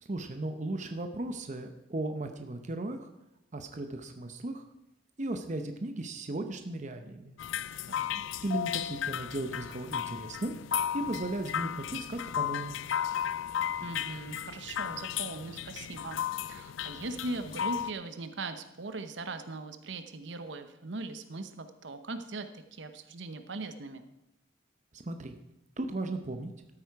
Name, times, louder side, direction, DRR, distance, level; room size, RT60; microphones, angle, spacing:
voice 1, 0.0-3.1 3.5-4.6 5.2-7.3 8.4-10.6 10.9-12.8 24.9-25.4 25.8-26.5, right 2 dB, 40° right, 6 dB, 0.8 m, -36 dB
sound 1, 7.4-17.9, left 9 dB, 80° left, 0.4 m, -34 dB
voice 2, 7.9-8.2 13.8-24.1, right 3 dB, 65° right, 9 dB, 0.9 m, -40 dB
13.5 x 8.6 x 4.7 m, 0.88 s
head